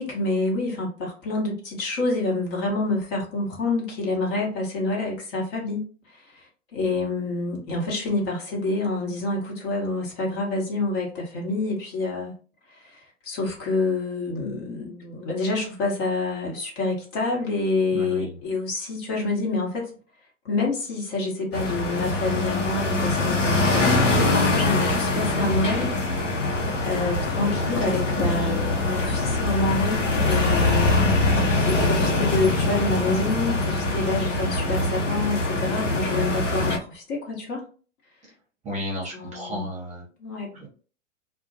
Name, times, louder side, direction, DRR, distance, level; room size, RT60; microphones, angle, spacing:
voice 1, 0.0-5.8 6.1-12.4 12.7-19.9 20.4-25.9 26.8-31.0 31.7-37.6 39.1-39.7 40.2-40.5, left 2 dB, 50° left, -1 dB, 1.0 m, -27 dB
voice 2, 17.9-18.4 28.1-29.1 38.6-40.0 40.5-40.7, equal, 20° right, -3 dB, 0.8 m, -33 dB
sound 1, 21.5-36.8, left 2 dB, 85° left, 0.7 m, -23 dB
2.2 x 2.1 x 2.7 m, 0.40 s
figure-of-eight pair, 105°, 36 cm